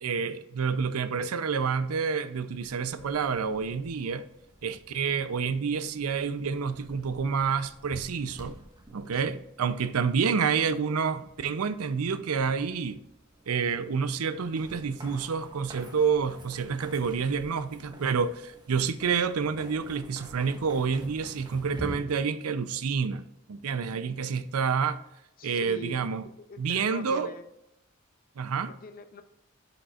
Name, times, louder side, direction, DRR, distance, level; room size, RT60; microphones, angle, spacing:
voice 1, 0.0-4.3 4.6-8.6 8.9-13.0 13.5-23.2 23.5-25.0 25.4-26.2 26.6-27.3 28.4-28.7, right 6 dB, 90° right, 0.5 m, -28 dB
sound 1, 2.6-22.0, right 1 dB, 20° right, 1.3 m, -49 dB
voice 2, 25.4-27.5 28.7-29.2, left 2 dB, 40° left, 0.6 m, -44 dB
11.0 x 5.3 x 2.4 m
head